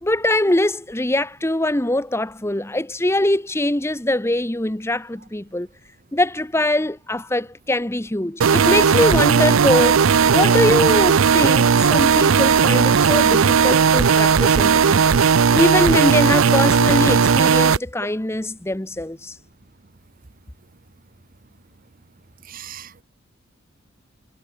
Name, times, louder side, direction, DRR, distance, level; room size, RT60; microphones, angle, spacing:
voice 1, 0.0-5.7 6.1-9.9 10.3-15.0 15.5-19.3, left 1 dB, 15° left, 1.0 m, -22 dB
sound 1, 8.4-17.8, right 6 dB, 90° right, 0.6 m, -16 dB
voice 2, 22.4-23.0, right 11 dB, 45° right, 1.0 m, -39 dB
head